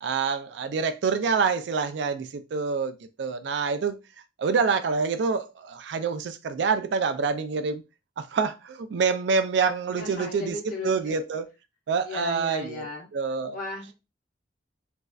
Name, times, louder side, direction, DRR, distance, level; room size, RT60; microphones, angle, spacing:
voice 1, 0.0-4.0 4.4-7.8 8.2-11.4 11.9-12.8 13.1-13.6, right 5 dB, 70° right, 0.4 m, -26 dB
voice 2, 10.0-11.2 12.0-13.1 13.5-13.9, left 2 dB, 45° left, 1.1 m, -36 dB
3.1 x 2.6 x 2.3 m
head